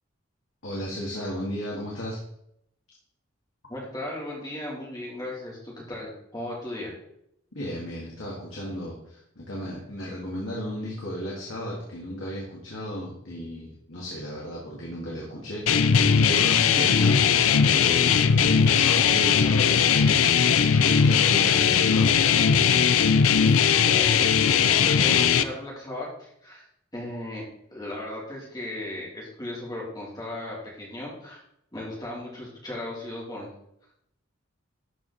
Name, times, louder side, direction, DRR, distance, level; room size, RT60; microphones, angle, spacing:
voice 1, 0.6-2.2 7.5-17.2 17.6-20.4 20.7-22.1, equal, 70° left, -4 dB, 2.1 m, -34 dB
voice 2, 3.7-7.0 23.8-26.7 26.9-31.4 31.7-33.5, left 1 dB, 20° left, -4 dB, 2.9 m, -36 dB
sound 1, 15.7-25.4, left 7 dB, 85° left, 0.5 m, -19 dB
12.0 x 4.8 x 4.1 m, 0.75 s
head